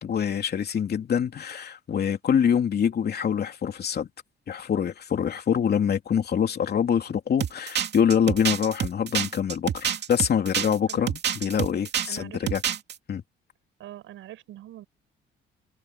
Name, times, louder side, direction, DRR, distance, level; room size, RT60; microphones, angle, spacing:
voice 1, 0.0-4.1 4.5-12.6 13.1-13.2, left 8 dB, 55° left, 3.1 m, -25 dB
sound 1, 7.4-12.2 12.5-12.9, right 9 dB, 60° right, 2.6 m, -27 dB
voice 2, 10.6-11.1 12.1-12.5 13.8-14.8, right 13 dB, 85° right, 7.9 m, -43 dB
cardioid pair, 90°, 20 cm